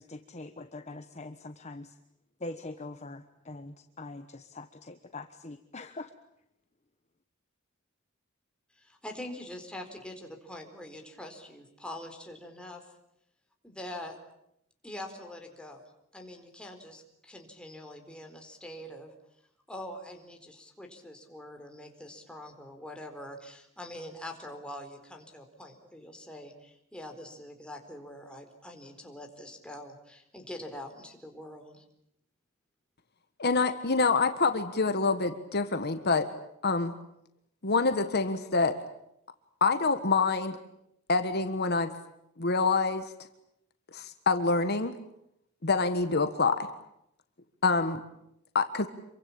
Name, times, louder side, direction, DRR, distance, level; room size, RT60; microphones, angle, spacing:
voice 1, 0.0-1.9 2.4-6.1, left 2 dB, 35° left, 8 dB, 1.2 m, -43 dB
voice 2, 8.7-12.9 13.6-14.2 14.8-15.8 16.1-19.1 19.7-31.8, left 1 dB, 5° left, 3 dB, 4.3 m, -44 dB
voice 3, 33.4-36.3 36.6-36.9 37.6-38.8 39.6-40.6 41.1-41.9 42.4-43.1 43.9-44.9 45.6-46.7 47.6-48.0 48.5-48.9, left 4 dB, 55° left, 9 dB, 1.5 m, -26 dB
27.5 x 24.0 x 8.8 m, 0.79 s
head